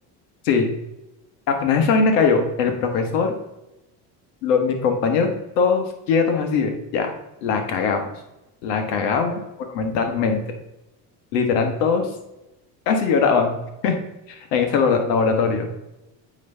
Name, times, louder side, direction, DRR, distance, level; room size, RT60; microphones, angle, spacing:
voice 1, 1.5-3.3 4.4-5.3 5.6-7.1 7.4-8.1 8.6-9.3 9.8-10.4 11.3-12.1 12.9-13.6 13.8-14.0 14.3-15.7, left 5 dB, 85° left, 5 dB, 1.2 m, -20 dB
9.4 x 3.2 x 3.3 m, 0.94 s
supercardioid pair, 75°, 48 cm